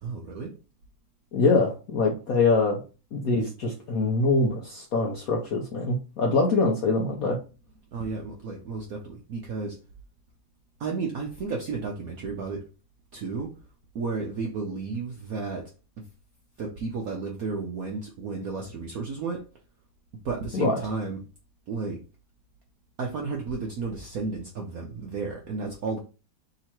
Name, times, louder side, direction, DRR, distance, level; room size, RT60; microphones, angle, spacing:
voice 1, 0.0-0.6 7.9-9.8 10.8-12.7 13.1-13.6 13.9-16.1 16.6-19.5 20.2-21.2 21.7-22.0 23.0-26.0, right 4 dB, 70° right, 0.8 m, -33 dB
voice 2, 1.3-2.8 3.1-7.4 20.5-20.8, left 3 dB, 60° left, 0.9 m, -24 dB
3.6 x 2.9 x 4.3 m
omnidirectional pair, 2.2 m